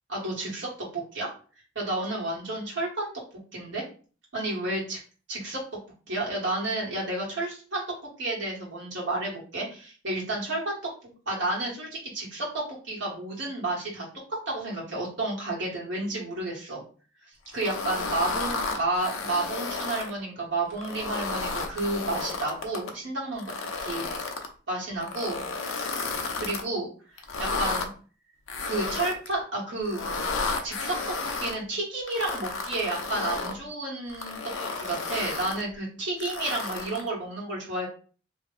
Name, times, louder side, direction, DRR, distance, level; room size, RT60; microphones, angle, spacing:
voice 1, 0.1-1.3 1.8-3.1 3.5-3.8 4.3-5.0 5.3-5.6 6.1-7.8 8.2-16.8 17.5-23.5 23.8-24.1 24.7-25.4 26.3-26.9 27.4-27.9 28.6-30.0 30.6-34.4 34.8-37.9, right 2 dB, 65° right, -4 dB, 1.8 m, -31 dB
sound 1, 17.6-20.1 20.7-22.9 23.4-24.5 25.0-26.6 27.2-27.9 28.5-29.3 29.9-31.6 32.1-33.6 34.1-35.6 36.2-37.1, left 3 dB, 90° left, 0.7 m, -32 dB
3.2 x 2.6 x 4.0 m, 0.39 s
head